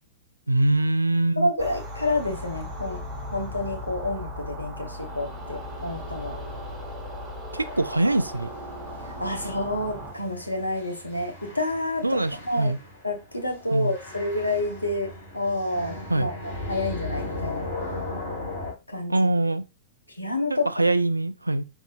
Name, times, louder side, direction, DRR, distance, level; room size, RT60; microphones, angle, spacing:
voice 1, 0.5-1.5 7.5-8.5 12.0-12.8 13.7-14.0 16.1-16.3 19.1-19.6 20.5-21.6, right 2 dB, 85° right, 0.3 m, -23 dB
voice 2, 1.4-3.0 3.3-6.4 9.2-12.7 13.0-17.6 18.9-19.3 20.2-20.7, left 2 dB, 85° left, 1.0 m, -29 dB
sound 1, 1.6-10.1, equal, 15° right, 1.8 m, -37 dB
sound 2, 7.6-18.7, left 2 dB, 65° left, 2.1 m, -37 dB
5.4 x 3.5 x 2.5 m
figure-of-eight pair, 100°, 0 cm